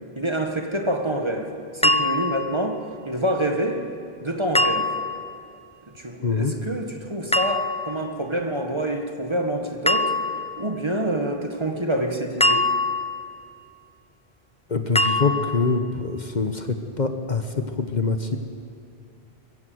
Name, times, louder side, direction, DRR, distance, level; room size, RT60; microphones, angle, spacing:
voice 1, 0.1-2.8 3.0-3.8 4.2-4.9 6.0-10.1 10.6-12.7, right 1 dB, 25° right, 3 dB, 1.6 m, -27 dB
sound 1, 1.8-2.5 4.5-5.3 7.3-8.0 9.9-10.5 12.4-13.3 15.0-15.7, left 2 dB, 10° left, 0.4 m, -23 dB
voice 2, 6.2-6.5 14.7-18.4, left 4 dB, 45° left, 6 dB, 1.3 m, -24 dB
23.0 x 15.0 x 7.9 m, 2.5 s
omnidirectional pair, 1.1 m